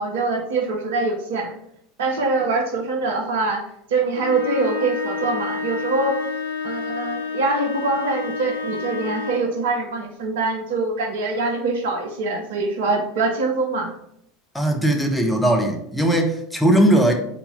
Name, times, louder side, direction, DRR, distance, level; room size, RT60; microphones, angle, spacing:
voice 1, 0.0-1.5 2.0-3.6 3.9-6.2 6.6-13.9, right 3 dB, 65° right, 3 dB, 1.0 m, -24 dB
sound 1, 4.1-9.6, left 4 dB, 85° left, 0.6 m, -29 dB
voice 2, 14.5-17.1, right 1 dB, 5° left, 2 dB, 1.1 m, -19 dB
4.3 x 4.2 x 5.5 m, 0.74 s
figure-of-eight pair, 75°, 0 cm